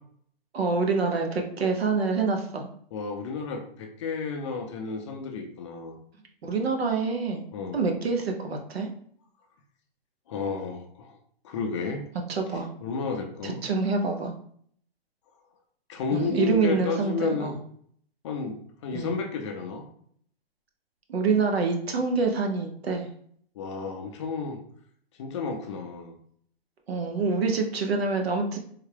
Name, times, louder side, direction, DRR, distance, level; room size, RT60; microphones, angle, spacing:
voice 1, 0.5-2.7 6.4-7.4 7.7-8.9 12.3-12.7 13.4-14.3 16.1-17.6 18.9-19.1 21.1-23.1 26.9-28.6, right 4 dB, 90° right, 3 dB, 0.9 m, -26 dB
voice 2, 2.9-6.0 7.5-7.8 10.3-11.2 11.4-12.0 12.8-13.6 15.9-17.6 18.2-19.9 23.6-24.6 25.2-26.2, left 4 dB, 30° left, 3 dB, 0.4 m, -32 dB
3.6 x 2.2 x 3.3 m, 0.62 s
hypercardioid pair, 145°, 30 cm